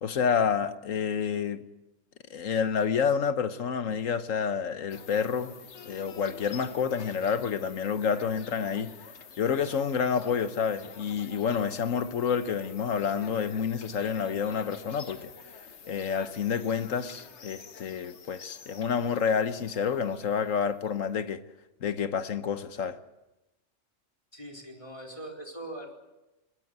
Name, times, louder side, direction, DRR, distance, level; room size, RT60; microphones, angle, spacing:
voice 1, 0.0-1.6 2.3-5.5 5.9-9.0 9.4-15.3 15.9-21.4 21.8-23.0, left 6 dB, 85° left, 1.5 m, -29 dB
sound 1, 4.9-21.0, left 6 dB, 60° left, 1.4 m, -48 dB
voice 2, 24.3-25.9, right 1 dB, 25° left, 4.5 m, -41 dB
21.5 x 20.0 x 8.1 m
omnidirectional pair, 1.3 m